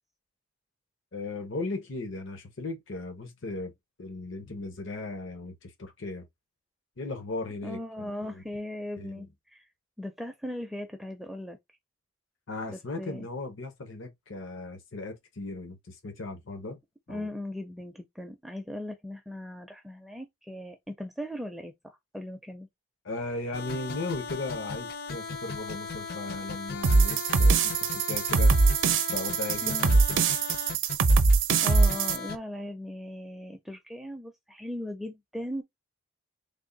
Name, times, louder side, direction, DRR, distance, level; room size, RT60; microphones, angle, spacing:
voice 1, 1.1-3.7 4.0-6.3 7.0-8.4 9.0-9.3 12.5-16.8 17.1-17.3 23.0-27.8 28.1-28.5 29.1-30.2, left 2 dB, 80° left, 0.9 m, -37 dB
voice 2, 7.6-9.7 10.0-11.6 12.7-13.3 17.1-22.7 29.6-29.9 31.6-35.6, left 1 dB, ahead, 0.4 m, -38 dB
sound 1, 23.5-32.4, left 4 dB, 50° left, 0.5 m, -37 dB
sound 2, 26.8-32.2, right 4 dB, 80° right, 0.5 m, -22 dB
3.5 x 2.2 x 3.8 m
head